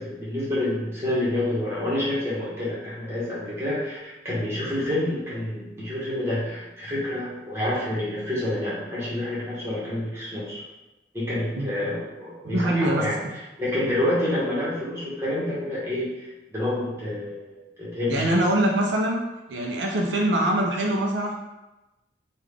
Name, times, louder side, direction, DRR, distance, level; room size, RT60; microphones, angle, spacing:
voice 1, 0.0-10.6 11.1-13.2 13.6-18.3, left 1 dB, 15° right, -8 dB, 1.0 m, -28 dB
voice 2, 12.4-13.0 18.1-19.2 19.5-21.3, right 1 dB, 80° right, 0 dB, 0.4 m, -23 dB
3.6 x 2.3 x 3.3 m, 1.0 s
head